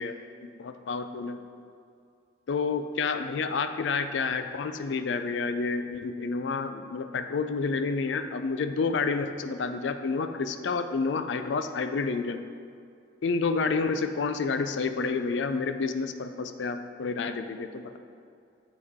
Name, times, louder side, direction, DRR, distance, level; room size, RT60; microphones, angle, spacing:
voice 1, 0.4-1.4 2.5-12.4 13.2-18.0, left 4 dB, 85° left, 9 dB, 0.4 m, -29 dB
7.4 x 6.4 x 3.6 m, 2.4 s
head